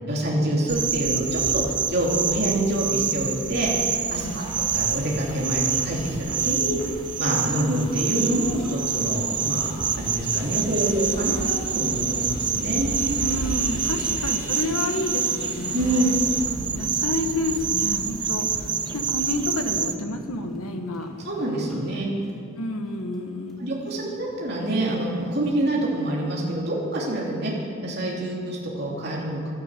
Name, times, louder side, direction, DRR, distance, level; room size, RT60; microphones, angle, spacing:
voice 1, 0.1-3.7 4.1-6.8 7.2-13.2 15.7-16.4 21.2-22.1 23.6-27.5 27.8-29.5, right 1 dB, 45° right, -3 dB, 3.0 m, -26 dB
sound 1, 0.7-19.9, right 7 dB, 20° right, 0.4 m, -27 dB
sound 2, 4.2-16.4, left 1 dB, 40° left, 4.0 m, -43 dB
sound 3, 7.6-25.5, equal, ahead, 2.0 m, -40 dB
voice 2, 13.2-16.2 16.8-21.1 22.5-23.8, left 2 dB, 85° left, 5 dB, 1.4 m, -30 dB
12.0 x 11.5 x 8.3 m, 2.3 s
head